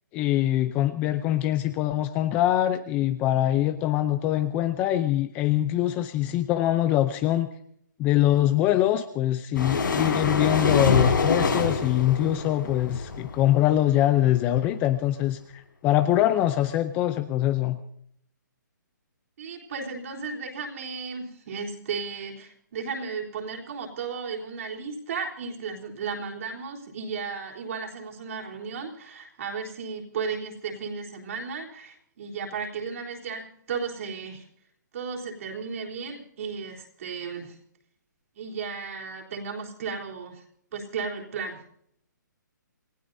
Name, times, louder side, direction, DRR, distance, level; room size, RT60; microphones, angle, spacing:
voice 1, 0.1-7.5 8.0-17.8, left 13 dB, 15° left, 11 dB, 0.5 m, -23 dB
sound 1, 9.5-13.9, left 4 dB, 85° left, 6.1 m, -25 dB
voice 2, 19.4-34.4 34.9-37.6 38.4-40.4 40.7-41.6, right 5 dB, 45° right, 0 dB, 3.9 m, -34 dB
29.0 x 15.5 x 2.7 m, 0.69 s
hypercardioid pair, 165°, 10 cm